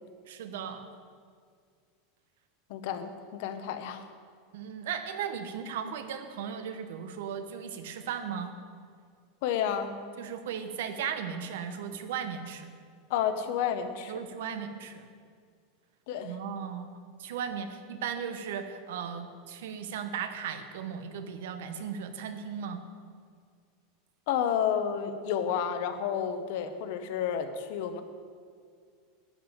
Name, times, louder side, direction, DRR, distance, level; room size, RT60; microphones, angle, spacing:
voice 1, 0.3-0.9 4.5-8.5 10.2-12.7 14.1-15.1 16.2-22.8, right 7 dB, 70° right, 8 dB, 1.1 m, -36 dB
voice 2, 2.7-4.1 9.4-9.9 13.1-14.2 16.1-16.4 24.3-28.0, left 8 dB, 50° left, 9 dB, 0.9 m, -30 dB
12.5 x 5.4 x 9.0 m, 2.1 s
supercardioid pair, 180°, 0 cm